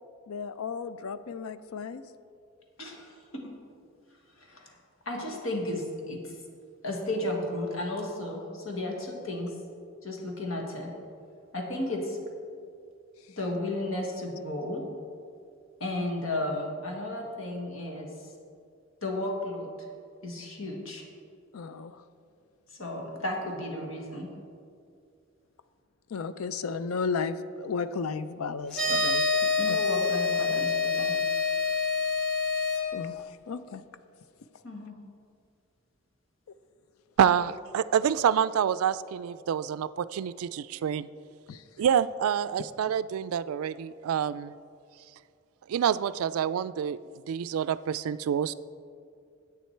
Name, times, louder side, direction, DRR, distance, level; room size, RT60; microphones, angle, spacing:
voice 1, 0.3-2.0 21.5-22.0 26.1-29.8 32.9-33.8 41.5-41.6, left 5 dB, 90° left, 13 dB, 0.5 m, -34 dB
voice 2, 2.8-3.4 4.4-4.8 5.0-6.4 6.8-9.5 10.0-10.9 11.5-12.2 13.4-14.8 15.8-18.1 19.0-19.7 20.2-21.0 22.7-24.3 29.6-31.1 34.6-35.0, left 1 dB, 70° left, 1 dB, 1.7 m, -33 dB
sound 1, 28.7-32.8, left 4 dB, 5° left, 1.9 m, -26 dB
voice 3, 37.2-41.1 41.8-44.5 45.7-47.0 47.3-48.5, right 8 dB, 90° right, 15 dB, 0.3 m, -27 dB
10.5 x 8.2 x 4.4 m, 2.4 s
head